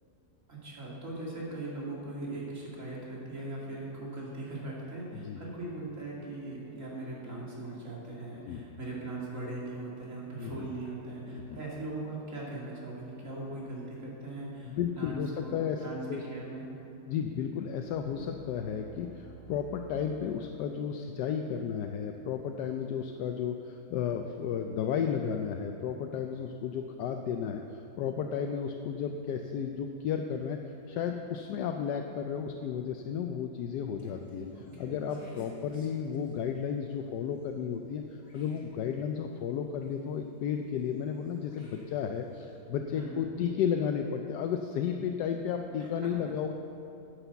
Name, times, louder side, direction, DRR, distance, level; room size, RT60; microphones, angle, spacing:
voice 1, 0.5-15.6 15.8-16.0 16.3-16.6 34.5-35.0 43.0-43.3 45.8-46.1, right 2 dB, 45° right, -5 dB, 2.8 m, -40 dB
voice 2, 11.3-11.6 14.7-16.2 17.1-30.6 30.9-34.5 34.8-38.0 38.3-46.5, left 7 dB, 80° left, 4 dB, 1.2 m, -33 dB
sound 1, 17.8-20.6, right 2 dB, 10° right, 2.5 m, -50 dB
sound 2, 33.9-37.9 38.2-39.8 40.6-42.4, left 2 dB, 50° left, 2.5 m, -53 dB
9.8 x 8.2 x 6.9 m, 2.8 s
omnidirectional pair, 1.8 m